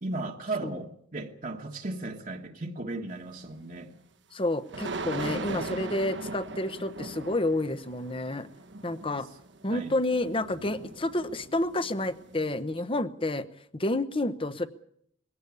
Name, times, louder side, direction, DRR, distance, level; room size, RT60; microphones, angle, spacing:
voice 1, 0.0-3.9 9.2-9.3 9.7-10.0, right 2 dB, 45° right, 0 dB, 1.5 m, -36 dB
sound 1, 3.3-3.5 4.7-12.6, right 3 dB, 60° right, 1.3 m, -39 dB
voice 2, 4.3-8.5 8.8-9.3 9.6-13.5 13.7-14.7, left 2 dB, 25° left, 13 dB, 1.0 m, -29 dB
22.0 x 17.0 x 8.4 m, 0.70 s
head